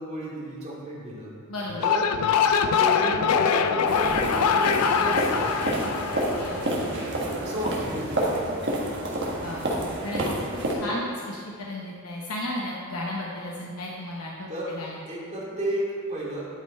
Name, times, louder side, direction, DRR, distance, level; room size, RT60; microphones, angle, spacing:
voice 1, 0.0-1.3 1.8-2.0 2.3-5.8 7.2-8.4 9.9-10.1 10.8-11.0 14.5-14.7 15.0-16.5, right 1 dB, 30° right, -6 dB, 2.3 m, -33 dB
voice 2, 1.5-1.8 6.3-6.9 9.4-10.2 10.8-15.0, left 1 dB, 70° left, -3 dB, 0.9 m, -34 dB
sound 1, 1.7-7.0, left 6 dB, 90° left, 0.4 m, -23 dB
sound 2, 3.9-10.7, right 1 dB, 50° right, 1.4 m, -29 dB
11.0 x 5.5 x 4.2 m, 2.1 s
head